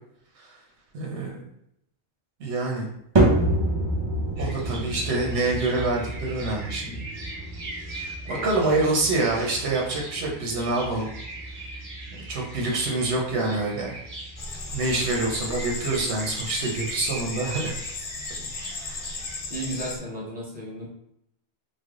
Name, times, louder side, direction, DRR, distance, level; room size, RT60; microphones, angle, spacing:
voice 1, 0.9-1.4 2.4-2.9 4.4-7.1 8.3-11.1 12.3-14.0 14.7-17.8 18.7-19.1, right 2 dB, 85° right, 0 dB, 1.0 m, -26 dB
sound 1, 3.2-19.6, right 1 dB, 30° right, 0.6 m, -30 dB
sound 2, 4.4-19.4, right 2 dB, 50° right, 1.1 m, -41 dB
voice 2, 8.2-8.8 19.5-20.9, right 1 dB, 10° right, -7 dB, 0.9 m, -34 dB
sound 3, 14.4-20.0, left 3 dB, 60° left, 0.7 m, -35 dB
3.4 x 2.0 x 3.5 m, 0.77 s
omnidirectional pair, 1.1 m